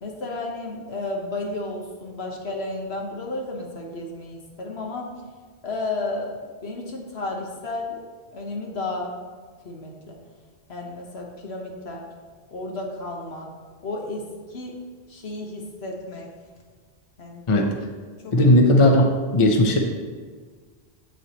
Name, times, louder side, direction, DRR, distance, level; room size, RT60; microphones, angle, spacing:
voice 1, 0.0-5.1 5.6-8.0 8.3-9.1 9.6-10.2 10.7-12.1 12.5-13.5 13.8-14.2 14.5-14.8 15.1-16.3 17.2-17.4 18.2-18.3, left 2 dB, 75° left, 0 dB, 1.5 m, -32 dB
voice 2, 18.3-19.8, left 1 dB, 35° left, 2 dB, 0.7 m, -17 dB
8.3 x 7.9 x 3.0 m, 1.5 s
omnidirectional pair, 1.1 m